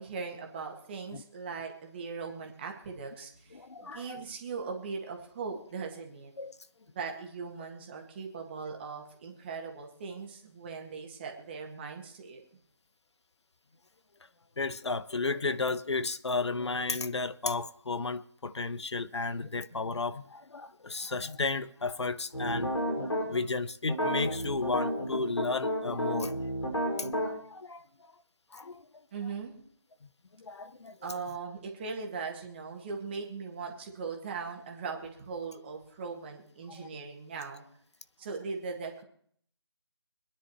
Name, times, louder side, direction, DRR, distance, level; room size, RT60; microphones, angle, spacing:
voice 1, 0.0-6.3 6.9-12.4 29.1-29.5 31.0-37.6 38.2-39.0, right 5 dB, 20° right, 1.7 m, -39 dB
voice 2, 3.5-4.2 6.4-6.5 14.6-26.5 27.0-27.8 28.5-28.8 30.4-31.0 36.8-36.9, left 3 dB, 70° left, 0.8 m, -33 dB
sound 1, 22.3-23.2 23.9-27.3, equal, 90° left, 5.3 m, -31 dB
25.5 x 10.0 x 3.1 m
figure-of-eight pair, 160°, 15 cm